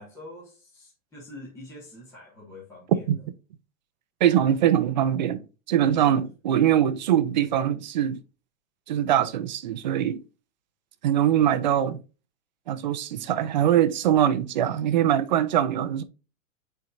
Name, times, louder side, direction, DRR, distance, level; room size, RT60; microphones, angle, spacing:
voice 1, 0.0-3.1 6.2-6.3, left 1 dB, 5° left, 1.5 m, -45 dB
voice 2, 4.2-8.2 8.9-10.2 11.0-12.0 12.7-16.0, right 10 dB, 35° right, 0.6 m, -22 dB
8.9 x 4.6 x 2.5 m
supercardioid pair, 180°, 40 cm